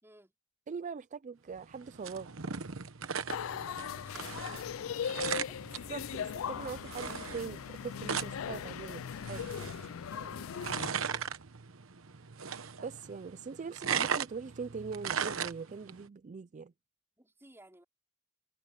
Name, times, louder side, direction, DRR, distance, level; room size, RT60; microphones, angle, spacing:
voice 1, 0.0-0.3 3.5-5.6 10.0-11.3 17.2-17.8, right 1 dB, 10° right, 4.8 m, -59 dB
voice 2, 0.7-2.6 5.9-9.5 12.8-16.7, right 5 dB, 35° right, 0.4 m, -42 dB
sound 1, 1.6-16.0, right 7 dB, 80° right, 1.1 m, -38 dB
sound 2, 3.3-10.9, left 8 dB, 80° left, 0.4 m, -39 dB
head